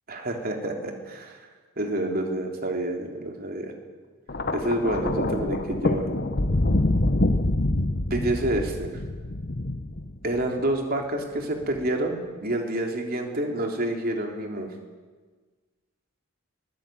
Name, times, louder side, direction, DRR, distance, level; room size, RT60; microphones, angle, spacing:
voice 1, 0.1-1.4 1.8-3.7 4.5-6.2 8.1-8.9 10.2-14.7, right 1 dB, 40° right, 3 dB, 3.3 m, -28 dB
Thunder, 4.3-10.6 11.6-11.9, left 1 dB, 45° left, 1.1 m, -26 dB
22.5 x 15.5 x 9.2 m, 1.4 s
head